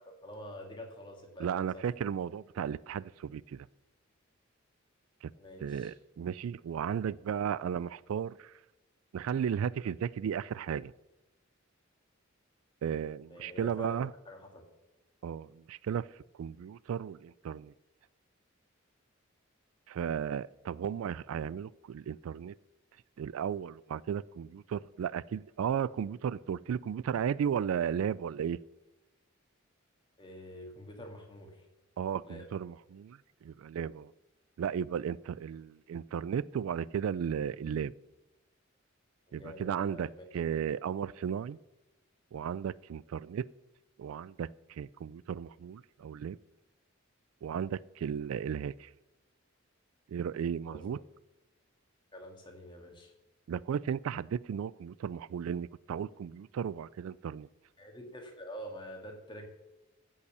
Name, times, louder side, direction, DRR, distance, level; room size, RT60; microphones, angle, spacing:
voice 1, 0.0-1.8 5.4-6.0 13.3-14.6 30.2-31.7 32.3-32.5 39.3-40.2 50.7-51.0 52.1-53.1 57.8-59.5, equal, 25° left, 2.1 m, -47 dB
voice 2, 1.4-3.7 5.2-5.3 5.6-8.5 9.1-10.9 12.8-14.1 15.2-16.1 16.4-17.7 19.9-22.5 23.2-28.6 32.0-34.1 34.6-37.9 39.3-41.6 42.3-43.5 44.0-46.4 47.4-48.9 50.1-51.0 53.5-57.5, right 8 dB, 85° right, 0.3 m, -35 dB
14.5 x 5.6 x 6.8 m
head